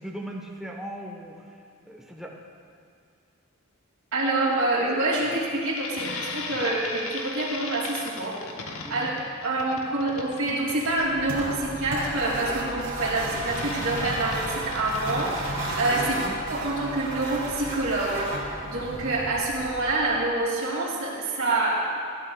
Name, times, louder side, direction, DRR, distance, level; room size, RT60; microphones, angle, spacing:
voice 1, 0.0-1.5 1.8-2.3 5.2-5.3 6.5-6.6 8.8-9.1 15.9-16.3, right 1 dB, ahead, -1 dB, 1.3 m, -39 dB
voice 2, 4.1-9.1 9.4-16.1 16.5-22.0, right 2 dB, 80° right, -6 dB, 2.9 m, -27 dB
sound 1, 5.7-15.8, left 3 dB, 85° left, 1.1 m, -37 dB
sound 2, 10.9-20.3, right 1 dB, 50° right, 2.9 m, -33 dB
20.0 x 12.5 x 2.5 m, 2.2 s
head